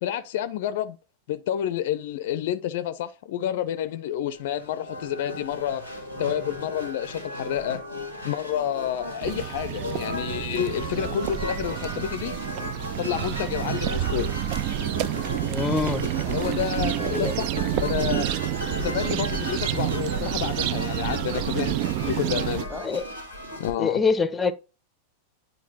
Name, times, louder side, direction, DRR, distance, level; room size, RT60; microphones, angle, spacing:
voice 1, 0.0-1.0 1.3-5.8 6.2-7.8 8.2-12.4 13.0-14.3 16.3-18.3 18.7-21.7 22.0-22.7 23.6-24.0, left 10 dB, 55° left, 0.5 m, -29 dB
sound 1, 4.3-23.7, left 1 dB, 80° right, 2.6 m, -36 dB
sound 2, 9.2-22.6, right 13 dB, 45° right, 0.4 m, -29 dB
voice 2, 15.5-16.1 17.1-17.3 22.7-23.0 23.8-24.5, left 4 dB, 15° left, 0.7 m, -25 dB
10.0 x 4.0 x 2.8 m
figure-of-eight pair, 90°, 0 cm